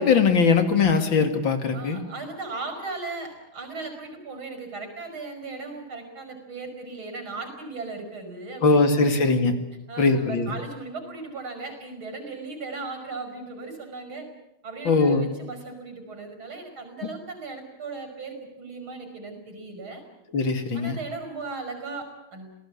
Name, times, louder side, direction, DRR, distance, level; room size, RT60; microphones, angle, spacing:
voice 1, 0.0-2.0 8.6-9.5 10.0-10.5 14.9-15.3 20.3-21.0, left 4 dB, 70° left, 8 dB, 3.1 m, -21 dB
voice 2, 1.7-9.4 9.9-14.3 14.6-20.0 20.7-22.5, right 3 dB, 85° right, 6 dB, 6.3 m, -37 dB
27.0 x 18.5 x 8.5 m, 0.89 s
omnidirectional pair, 2.2 m